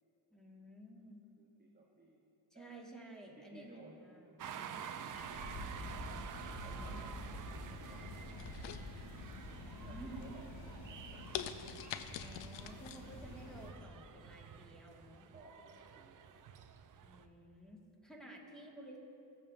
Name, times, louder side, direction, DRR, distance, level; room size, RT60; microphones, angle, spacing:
voice 1, 0.3-1.2 2.5-5.0 6.6-7.2 9.9-10.3 12.2-15.3 17.0-19.0, right 1 dB, ahead, -3 dB, 1.7 m, -53 dB
voice 2, 1.4-2.2 2.5-2.8 3.4-4.4 4.8-5.7 6.4-8.8 9.4-11.8 15.3-16.5, right 2 dB, 20° right, -3 dB, 0.9 m, -60 dB
sound 1, 4.4-17.3, right 8 dB, 45° right, 0.5 m, -50 dB
sound 2, 5.1-13.7, left 1 dB, 50° left, 1.5 m, -48 dB
sound 3, 8.4-9.4 9.8-10.2 10.7-10.8 11.3-13.0 13.4-13.5, left 10 dB, 70° left, 0.5 m, -44 dB
15.0 x 5.4 x 2.6 m, 2.7 s
supercardioid pair, 60°, 47 cm